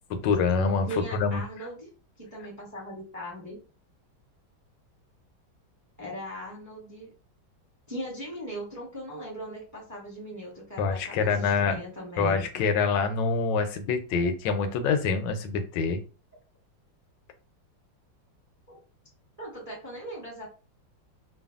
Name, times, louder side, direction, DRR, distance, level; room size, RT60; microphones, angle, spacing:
voice 1, 0.1-1.4 10.8-11.8 12.2-16.0, left 5 dB, 80° left, 8 dB, 1.2 m, -26 dB
voice 2, 0.9-1.9 2.2-3.6 6.0-7.1 7.9-12.5 18.7-18.8 19.4-20.5, right 1 dB, 15° right, -4 dB, 0.7 m, -39 dB
3.2 x 2.2 x 2.3 m, 0.33 s
omnidirectional pair, 2.0 m